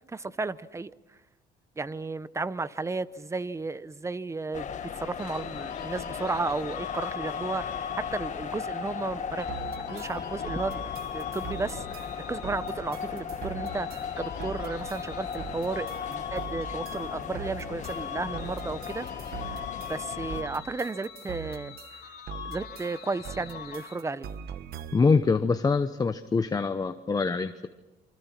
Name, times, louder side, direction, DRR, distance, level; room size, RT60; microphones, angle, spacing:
voice 1, 0.1-0.9 1.8-4.7 5.0-7.8 8.1-9.5 9.9-10.8 11.1-19.1 19.5-21.8 22.4-24.3, right 3 dB, 15° right, 16 dB, 0.8 m, -33 dB
sound 1, 4.5-20.4, left 7 dB, 45° left, 1.7 m, -37 dB
sound 2, 5.2-8.5 9.4-13.2 13.6-17.6 17.8-24.2, left 10 dB, 65° left, 3.8 m, -42 dB
sound 3, 9.5-25.2, right 8 dB, 65° right, 1.4 m, -43 dB
voice 2, 24.9-27.7, left 4 dB, 20° left, 9 dB, 0.8 m, -24 dB
27.5 x 25.0 x 5.9 m, 1.1 s
cardioid pair, 110°, 17 cm